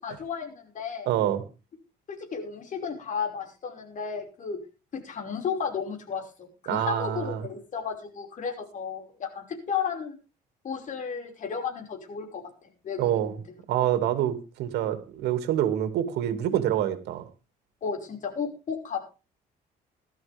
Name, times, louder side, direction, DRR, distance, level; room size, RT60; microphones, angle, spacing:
voice 1, 0.0-1.1 2.1-4.6 4.9-10.2 10.6-12.4 12.8-13.3 17.8-19.0, left 6 dB, 50° left, 3 dB, 5.4 m, -33 dB
voice 2, 1.1-1.4 6.7-7.5 13.0-13.4 13.7-17.3, right 11 dB, 80° right, 10 dB, 2.3 m, -26 dB
17.0 x 13.0 x 3.5 m, 0.32 s
cardioid pair, 110°, 17 cm